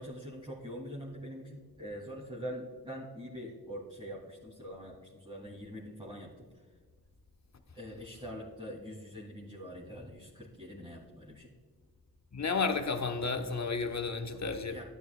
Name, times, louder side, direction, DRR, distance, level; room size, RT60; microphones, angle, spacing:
voice 1, 0.0-6.4 7.7-11.5 14.7-14.8, equal, 10° right, 2.6 m, -44 dB
voice 2, 12.3-14.8, left 4 dB, 45° left, 1.0 m, -32 dB
12.0 x 9.4 x 2.3 m
cardioid pair, 40°, 39 cm